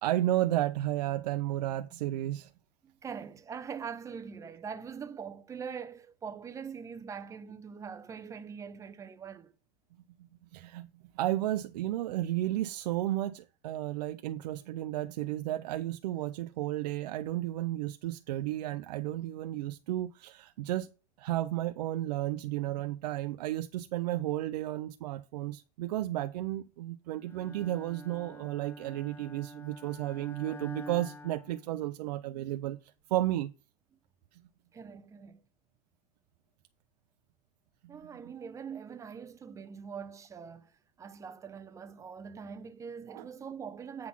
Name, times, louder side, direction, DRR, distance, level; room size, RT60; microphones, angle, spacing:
voice 1, 0.0-2.5 10.5-10.9 11.1-20.9 21.2-33.5 34.3-34.4 37.8-38.0 43.1-43.3, right 14 dB, 85° right, 0.5 m, -33 dB
voice 2, 2.8-9.5 34.7-35.4 37.9-44.1, right 6 dB, 15° right, 0.6 m, -43 dB
Bowed string instrument, 27.2-32.2, left 1 dB, 10° left, 1.2 m, -48 dB
8.4 x 4.0 x 5.9 m
supercardioid pair, 145°, 20 cm